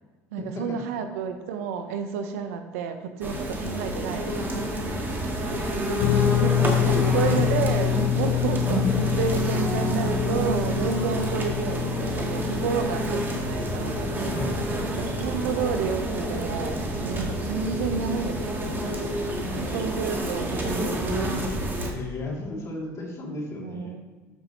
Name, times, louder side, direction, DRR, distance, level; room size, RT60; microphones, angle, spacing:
voice 1, 0.3-4.5 6.2-6.5 6.9-14.2 15.0-18.5 18.8-18.9 19.6-21.2 23.6-24.1, right 6 dB, 80° right, 8 dB, 0.7 m, -31 dB
sound 1, 3.2-21.9, right 1 dB, 25° right, 1.7 m, -28 dB
Guitar, 6.0-15.3, left 12 dB, 75° left, 0.5 m, -27 dB
voice 2, 6.5-7.4 14.3-15.0 21.9-23.9, left 2 dB, 40° left, -2 dB, 2.6 m, -34 dB
12.5 x 5.3 x 3.0 m, 1.3 s
hypercardioid pair, 85°, 8 cm